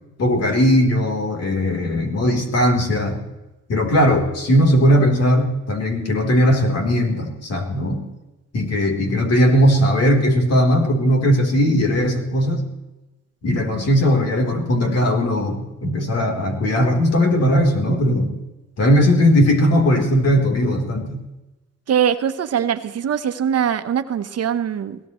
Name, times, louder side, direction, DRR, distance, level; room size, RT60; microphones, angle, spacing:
voice 1, 0.2-3.2 3.7-8.1 8.5-12.6 13.4-18.3 18.8-21.2, equal, 55° left, 3 dB, 3.8 m, -18 dB
voice 2, 21.9-25.0, right 8 dB, 55° right, 9 dB, 1.1 m, -22 dB
22.5 x 17.0 x 3.2 m, 1.0 s
cardioid pair, 90°, 30 cm